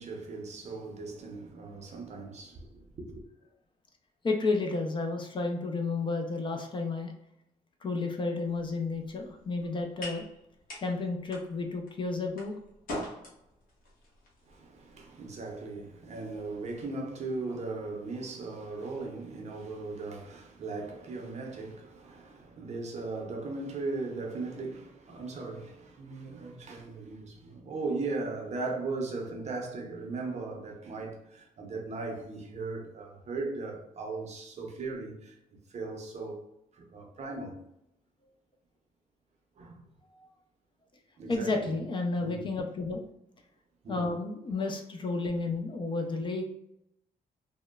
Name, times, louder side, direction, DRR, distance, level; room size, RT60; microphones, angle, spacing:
voice 1, 0.0-3.2 14.5-35.3 35.7-36.4 36.7-37.6 39.6-39.9 41.2-41.7 42.2-42.7 43.8-44.1, right 3 dB, 50° right, 0.6 m, -38 dB
voice 2, 4.2-7.1 7.8-10.3 10.8-12.6 40.1-40.2 41.3-43.0 43.9-46.4, left 3 dB, 35° left, 0.3 m, -31 dB
sound 1, 8.4-16.8, left 1 dB, 70° left, 0.8 m, -46 dB
2.9 x 2.0 x 2.2 m
cardioid pair, 130°, 15 cm